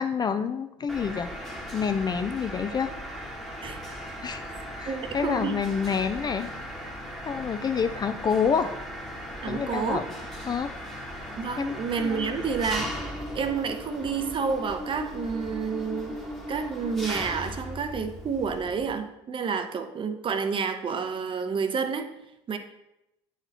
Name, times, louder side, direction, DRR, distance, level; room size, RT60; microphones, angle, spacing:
voice 1, 0.0-1.3 1.7-2.9 4.2-4.5 4.8-6.5 7.3-8.7 9.5-10.0 10.5-10.7 11.6-12.4, left 6 dB, 25° left, 9 dB, 0.4 m, -28 dB
Mechanisms, 0.9-18.9, equal, ahead, 1.1 m, -38 dB
voice 2, 4.9-5.5 9.4-10.0 11.4-12.9 13.3-16.1 16.5-22.1 22.5-22.6, right 5 dB, 35° right, 8 dB, 0.7 m, -29 dB
8.7 x 4.1 x 2.9 m, 0.86 s
hypercardioid pair, 65°, 15 cm